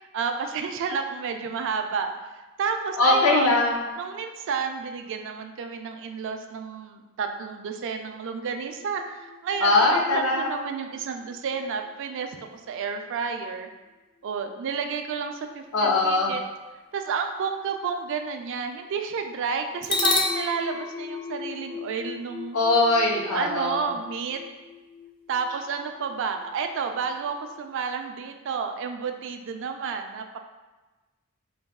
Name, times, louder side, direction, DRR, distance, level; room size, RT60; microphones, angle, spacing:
voice 1, 0.1-2.1 2.6-3.6 4.0-12.4 12.7-13.7 14.2-16.4 16.9-22.6 23.3-24.4 25.3-30.4, right 5 dB, 60° right, 5 dB, 0.3 m, -31 dB
voice 2, 3.0-3.7 9.6-10.5 15.7-16.3 22.5-23.8, left 2 dB, 85° left, -1 dB, 0.7 m, -21 dB
sound 1, 8.7-12.2 19.8-27.7, left 3 dB, 20° left, 0.3 m, -34 dB
3.9 x 2.2 x 3.5 m, 1.2 s
head